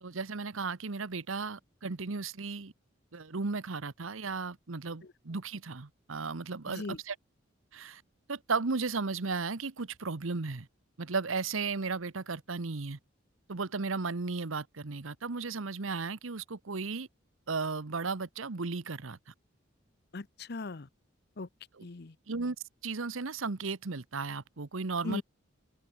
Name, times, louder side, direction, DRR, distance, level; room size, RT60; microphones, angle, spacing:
voice 1, 0.0-2.7 3.1-7.1 7.7-8.0 8.3-10.7 11.0-13.0 13.5-17.1 17.5-19.2 21.8-21.9 22.3-22.6 22.8-25.2, right 4 dB, 85° right, 1.0 m, -35 dB
voice 2, 6.7-7.0 20.1-20.9 21.4-21.5 21.8-22.1 25.0-25.2, left 3 dB, 55° left, 0.8 m, -39 dB
open air
head